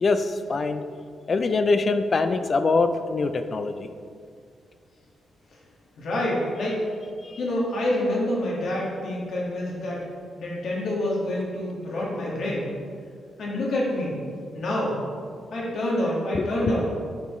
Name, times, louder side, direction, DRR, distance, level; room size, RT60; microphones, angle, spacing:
voice 1, 0.0-0.8 1.3-3.9 7.2-7.4 16.3-16.7, left 3 dB, 40° left, 9 dB, 0.4 m, -24 dB
voice 2, 6.0-6.8 7.4-10.0 10.4-12.7 13.4-14.2 14.5-15.0 15.5-16.9, left 1 dB, 65° left, -4 dB, 1.8 m, -27 dB
10.5 x 4.5 x 3.1 m, 2.1 s
cardioid pair, 125°, 0 cm